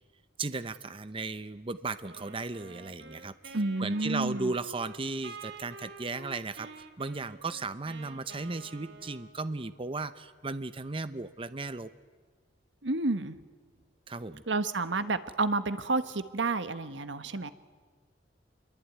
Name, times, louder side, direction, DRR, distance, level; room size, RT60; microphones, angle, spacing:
voice 1, 0.4-11.9 14.1-14.4, right 3 dB, 30° right, 12 dB, 0.7 m, -36 dB
Wind instrument woodwind instrument, 2.0-9.7, right 3 dB, 65° right, 2.5 m, -49 dB
voice 2, 3.5-4.5 12.8-13.4 14.5-17.5, right 3 dB, 90° right, 11 dB, 1.3 m, -30 dB
27.5 x 22.5 x 9.5 m, 1.5 s
head